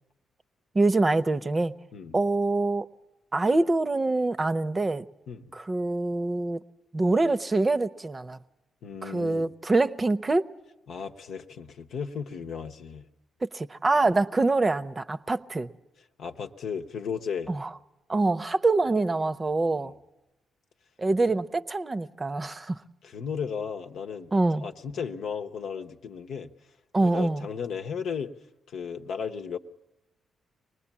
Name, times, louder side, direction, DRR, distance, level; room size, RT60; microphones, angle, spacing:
voice 1, 0.7-1.7 2.1-2.9 3.3-5.0 5.5-6.6 6.9-8.4 9.0-10.5 13.4-15.7 17.5-17.7 18.1-19.9 21.0-22.8 24.3-24.6 26.9-27.4, right 2 dB, 30° right, 0.8 m, -25 dB
voice 2, 8.8-9.5 10.9-13.0 16.2-17.5 19.8-19.9 23.0-26.5 27.0-28.3 28.7-29.6, left 6 dB, 65° left, 0.9 m, -35 dB
24.5 x 20.0 x 7.3 m
hypercardioid pair, 40°, 0 cm